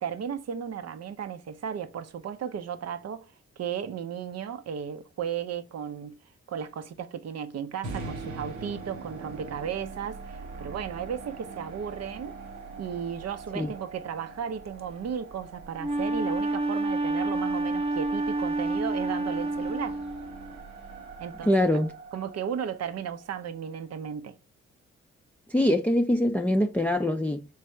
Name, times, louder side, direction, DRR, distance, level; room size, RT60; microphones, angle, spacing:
voice 1, 0.0-3.3 3.6-6.2 6.5-12.4 12.8-20.0 21.2-21.8 22.1-24.4, right 8 dB, 55° right, 0.6 m, -35 dB
sound 1, 7.8-24.0, right 3 dB, 90° right, 0.9 m, -43 dB
Wind instrument woodwind instrument, 15.8-20.5, right 2 dB, 20° right, 0.9 m, -29 dB
voice 2, 21.5-21.9 25.5-27.5, left 1 dB, 5° left, 0.5 m, -23 dB
3.3 x 3.2 x 4.5 m
hypercardioid pair, 45°, 31 cm